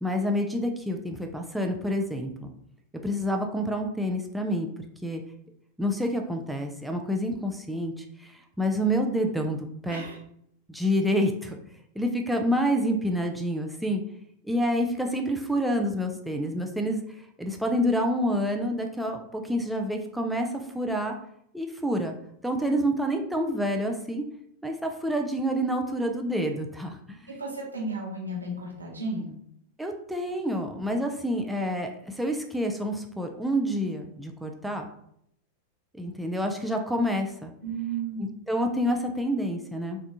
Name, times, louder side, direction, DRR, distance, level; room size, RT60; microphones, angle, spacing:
voice 1, 0.0-2.3 3.0-4.7 5.0-5.2 5.8-10.0 10.7-11.6 12.0-14.0 14.5-17.0 17.4-21.1 21.5-22.1 22.4-24.2 24.6-27.4 29.8-34.9 36.0-37.5 38.5-40.0, equal, 5° right, 3 dB, 0.3 m, -28 dB
voice 2, 27.3-29.3 37.6-38.2, right 3 dB, 80° right, -4 dB, 0.9 m, -33 dB
3.2 x 2.5 x 2.7 m, 0.72 s
figure-of-eight pair, 90°, 0 cm